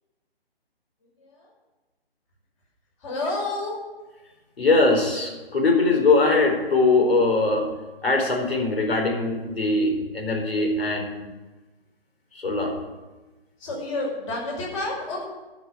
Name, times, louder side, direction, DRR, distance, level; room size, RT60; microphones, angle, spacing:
voice 1, 1.2-1.5 3.0-3.7 13.6-15.2, left 2 dB, 30° left, -2 dB, 5.5 m, -30 dB
voice 2, 4.6-7.7 8.0-11.1 12.3-12.7, left 3 dB, 75° left, 2 dB, 4.3 m, -21 dB
12.5 x 6.2 x 9.7 m, 1.2 s
hypercardioid pair, 150°, 30 cm